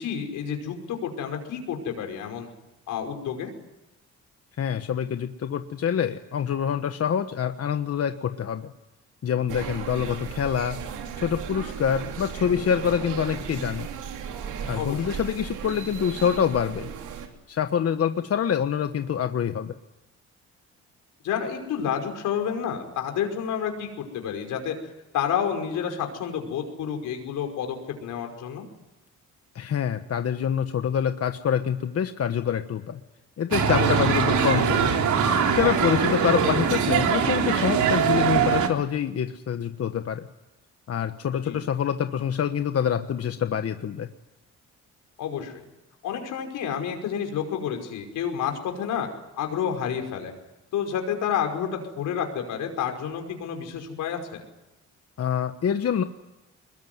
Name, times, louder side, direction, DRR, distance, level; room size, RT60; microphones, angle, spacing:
voice 1, 0.0-2.5 2.9-3.5 14.7-15.2 21.2-24.7 25.1-28.6 33.8-34.0 41.5-41.6 45.2-45.6 46.0-49.1 49.4-50.3 50.7-54.4, left 8 dB, 85° left, 4 dB, 5.4 m, -29 dB
voice 2, 4.6-8.7 9.2-10.8 11.2-13.9 14.7-16.9 17.5-19.7 29.5-33.0 33.4-34.9 35.5-40.3 40.9-44.1 55.2-56.0, left 8 dB, 50° left, 8 dB, 1.3 m, -26 dB
sound 1, 9.5-17.3, right 7 dB, 90° right, 3.5 m, -36 dB
sound 2, 33.5-38.7, right 6 dB, 75° right, 3.5 m, -22 dB
23.0 x 21.5 x 9.5 m, 1.0 s
cardioid pair, 90°, 30 cm